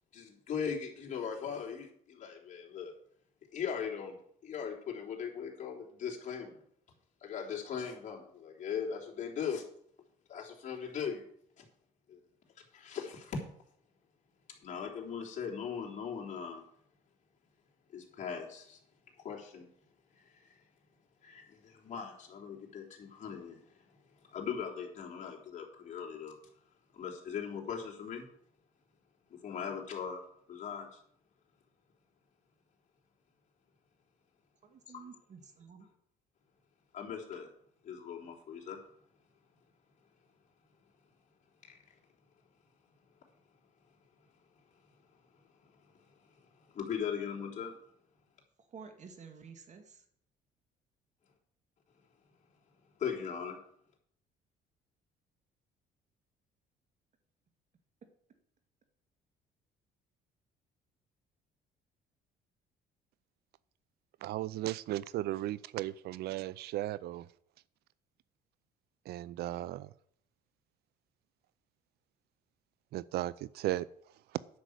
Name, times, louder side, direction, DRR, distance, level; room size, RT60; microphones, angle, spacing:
voice 1, 0.1-2.9 3.5-4.2 4.4-6.6 7.2-9.6 10.3-11.3 11.6-11.7 12.1-12.2 12.7-13.4 14.5-16.6 17.9-18.8 19.2-19.7 20.1-20.6 21.2-23.8 24.2-26.4 26.9-28.3 29.3-30.2 30.5-31.0 34.9-35.0 36.9-37.5 37.8-38.8 41.7-41.8 45.6-45.7 46.6-47.7 53.0-53.6, left 7 dB, 45° left, -1 dB, 3.6 m, -39 dB
voice 2, 34.6-35.9 48.7-50.0, right 5 dB, 45° right, 7 dB, 2.1 m, -51 dB
voice 3, 64.2-67.3 69.1-69.9 72.9-73.9, right 15 dB, 70° right, 20 dB, 0.4 m, -36 dB
10.5 x 6.2 x 8.1 m, 0.67 s
cardioid pair, 110°, 17 cm